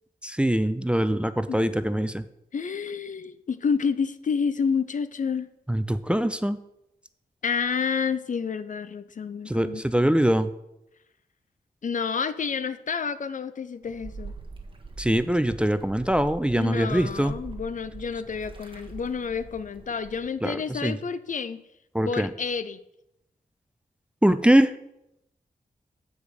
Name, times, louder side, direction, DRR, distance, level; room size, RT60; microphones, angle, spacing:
voice 1, 0.2-2.3 5.7-6.6 9.5-10.5 15.0-17.3 20.4-21.0 21.9-22.3 24.2-24.7, right 1 dB, 5° right, 12 dB, 0.4 m, -23 dB
voice 2, 2.5-5.5 7.4-10.1 11.8-14.3 16.6-21.6 22.1-22.8, left 6 dB, 55° left, 13 dB, 0.5 m, -29 dB
sound 1, 13.8-20.3, right 4 dB, 35° right, 1.3 m, -43 dB
7.0 x 5.0 x 6.4 m, 0.84 s
wide cardioid pair, 80°, 15 cm